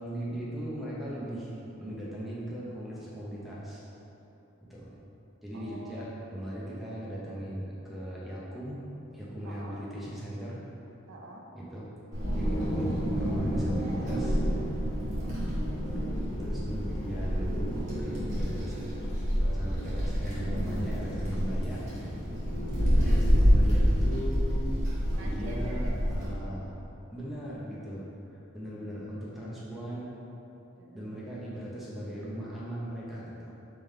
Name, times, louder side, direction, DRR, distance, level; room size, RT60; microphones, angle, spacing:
voice 1, 0.0-3.8 4.6-4.9 5.4-8.8 9.1-10.6 11.5-11.9 12.3-14.4 16.4-17.5 17.9-18.8 19.4-21.8 23.0-24.7 25.2-26.8 27.1-28.1 28.3-30.1 30.9-33.5, equal, ahead, -8 dB, 0.6 m, -38 dB
voice 2, 5.5-6.1 6.5-6.7 9.4-9.8 11.1-11.5 14.8-15.7 22.8-23.4 25.1-25.9 28.6-29.0 30.8-31.1, right 2 dB, 65° right, -1 dB, 0.5 m, -47 dB
Wind, 12.1-26.3, equal, 35° right, 1.2 m, -28 dB
3.7 x 3.3 x 4.3 m, 3.0 s
head